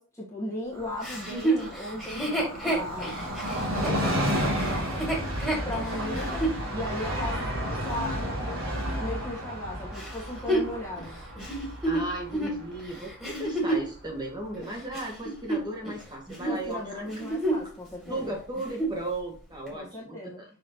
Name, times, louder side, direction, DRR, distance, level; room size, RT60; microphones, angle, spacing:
voice 1, 0.0-5.0 5.6-11.2 16.5-18.3 19.7-20.4, left 1 dB, 15° left, -4 dB, 1.3 m, -37 dB
Train, 0.7-14.1 14.4-14.5, equal, 65° right, 3.3 m, -32 dB
Chuckle chortle, 1.0-6.6 7.2-7.3 9.9-13.9 14.5-16.0 16.3-16.6 17.0-17.7 18.0-18.1 18.5-19.0 19.7-19.8, right 1 dB, ahead, 2.3 m, -30 dB
voice 2, 11.8-17.0 18.1-20.4, right 1 dB, 20° right, 0 dB, 1.9 m, -36 dB
6.4 x 6.1 x 2.9 m, 0.40 s
head